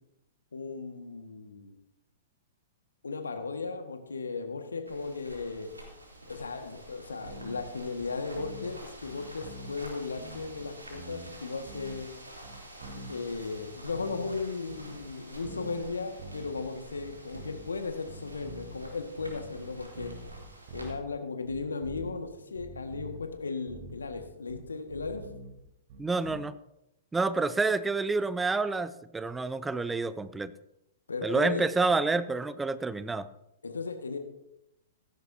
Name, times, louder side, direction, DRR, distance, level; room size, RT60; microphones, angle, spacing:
voice 1, 0.5-1.8 3.0-5.7 6.3-12.1 12.9-20.1 20.7-25.2 31.1-31.7 33.6-34.2, left 4 dB, 80° left, 6 dB, 1.7 m, -36 dB
sound 1, 4.8-20.9, right 1 dB, 90° right, 3.4 m, -49 dB
sound 2, 7.2-7.6 8.0-8.7 9.0-9.9 10.2-11.3 11.7-12.1 12.4-14.4 14.7-15.1 15.4-16.7 16.9-17.7 18.0-21.1 21.4-22.3 22.5-23.3 23.7-26.4, right 2 dB, 50° right, 3.2 m, -45 dB
voice 2, 26.0-26.5 27.1-30.5 31.2-33.3, right 3 dB, 10° right, 15 dB, 0.6 m, -28 dB
16.5 x 14.0 x 2.8 m, 0.87 s
figure-of-eight pair, 110°, 0 cm